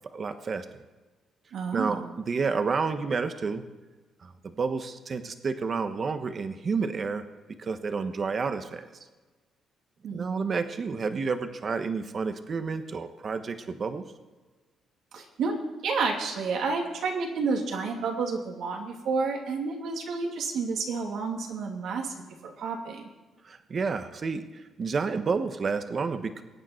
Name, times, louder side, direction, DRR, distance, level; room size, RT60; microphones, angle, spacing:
voice 1, 0.1-0.6 1.7-3.6 4.2-7.2 7.6-8.8 10.1-14.0 23.4-24.4 24.8-26.4, right 5 dB, 45° right, 9 dB, 1.2 m, -30 dB
voice 2, 1.5-2.1 10.0-10.3 15.1-15.5 15.8-23.1, right 4 dB, 75° right, 1 dB, 2.8 m, -30 dB
21.5 x 9.2 x 4.5 m, 1.3 s
cardioid pair, 90°, 0 cm